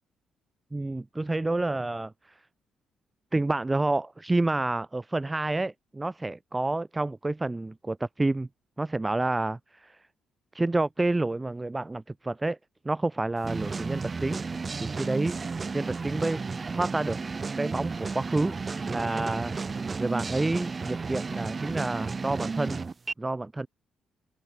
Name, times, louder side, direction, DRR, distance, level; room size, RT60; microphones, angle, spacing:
voice 1, 0.7-2.1 3.3-8.5 8.8-10.0 10.5-12.6 12.8-14.4 14.8-15.4 15.7-16.4 16.7-17.2 17.6-18.6 18.9-19.6 20.0-22.8 23.2-23.7, right 2 dB, 15° right, 0.9 m, -29 dB
sound 1, 13.4-23.1, right 4 dB, 30° right, 3.3 m, -33 dB
open air
cardioid pair, 90°, 0 cm